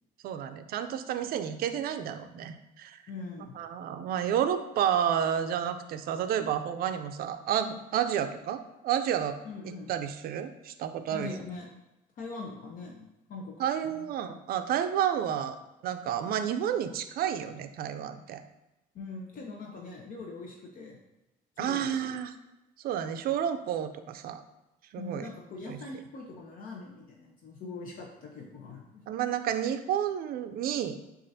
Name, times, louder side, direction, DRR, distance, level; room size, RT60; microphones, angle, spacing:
voice 1, 0.2-3.0 3.4-9.4 9.6-11.3 13.6-15.6 15.8-18.4 21.6-22.3 22.8-24.4 24.9-25.3 25.6-25.8 29.1-31.0, right 9 dB, 60° right, 9 dB, 0.4 m, -30 dB
voice 2, 3.1-3.6 9.4-9.9 11.1-11.7 12.2-13.5 13.8-14.1 18.9-21.0 21.6-22.2 25.0-29.0, left 3 dB, 55° left, 0 dB, 0.7 m, -42 dB
7.2 x 2.5 x 2.7 m, 0.98 s
cardioid pair, 110°, 17 cm